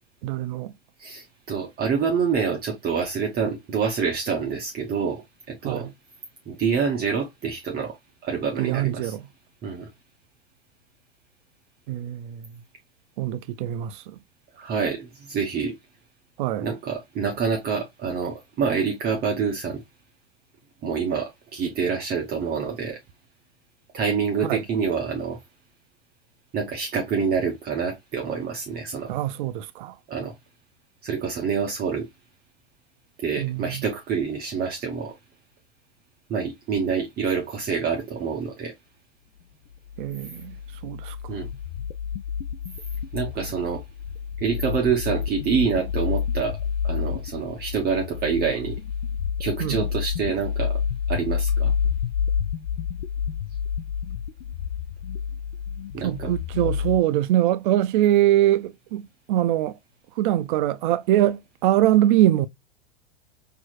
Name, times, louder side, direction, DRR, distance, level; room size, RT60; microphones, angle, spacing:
voice 1, 0.2-0.7 5.6-5.9 8.6-9.2 11.9-12.6 13.2-14.2 16.4-16.7 24.4-24.6 29.1-29.9 33.4-33.9 40.0-40.6 40.8-41.2 49.6-49.8 56.0-59.8 60.2-62.5, right 13 dB, 50° right, 0.5 m, -23 dB
voice 2, 1.0-5.2 5.5-5.9 6.5-8.0 8.2-9.1 9.6-9.9 14.6-15.7 16.6-19.8 20.8-23.0 23.9-25.4 26.5-29.1 30.1-30.3 31.0-32.1 33.2-35.1 36.3-38.7 41.3-41.5 43.1-43.8 44.4-46.6 46.8-48.8 49.4-50.8 51.1-51.7 55.9-56.3, right 6 dB, 30° right, 0.9 m, -26 dB
sound 1, 39.9-57.0, left 7 dB, 75° left, 0.5 m, -29 dB
4.3 x 2.7 x 2.3 m
hypercardioid pair, 110°, 33 cm